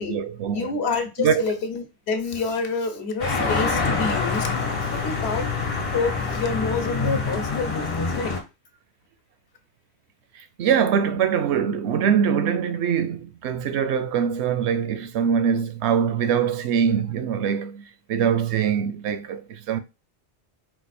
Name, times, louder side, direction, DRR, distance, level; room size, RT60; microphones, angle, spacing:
voice 1, 0.0-0.7 1.2-1.4 10.3-17.8 18.1-19.8, right 7 dB, 75° right, 0.8 m, -23 dB
voice 2, 0.5-5.5 5.9-8.4, left 4 dB, 70° left, 1.0 m, -28 dB
sound 1, 3.2-8.4, left 4 dB, 40° left, 1.2 m, -26 dB
4.6 x 2.4 x 4.1 m
omnidirectional pair, 1.2 m